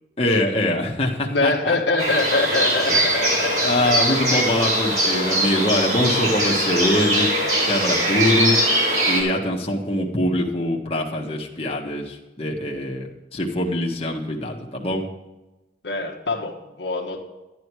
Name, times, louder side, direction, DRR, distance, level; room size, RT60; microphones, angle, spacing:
voice 1, 0.2-1.7 2.9-3.0 3.6-7.3 7.7-8.7 9.1-15.1, left 1 dB, 35° left, -1 dB, 1.6 m, -23 dB
voice 2, 1.2-4.4 15.8-17.2, left 3 dB, 80° left, 2 dB, 1.5 m, -24 dB
sound 1, 2.0-9.2, equal, 45° right, 5.2 m, -21 dB
12.5 x 10.0 x 4.8 m, 1.0 s
head